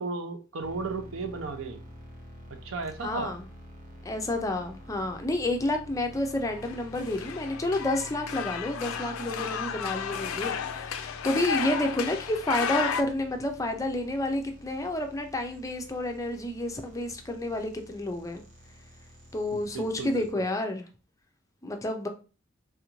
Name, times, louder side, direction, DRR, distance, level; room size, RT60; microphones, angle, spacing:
voice 1, 0.0-1.8 2.6-3.3 19.5-20.4, right 3 dB, 75° right, 0.5 m, -35 dB
sound 1, 0.6-20.3, equal, 45° right, 0.9 m, -48 dB
voice 2, 3.0-3.5 4.0-18.4 19.3-20.9 21.6-22.1, left 1 dB, 15° left, 0.4 m, -30 dB
sound 2, 6.5-13.0, left 7 dB, 90° left, 0.4 m, -33 dB
3.4 x 2.5 x 3.0 m
head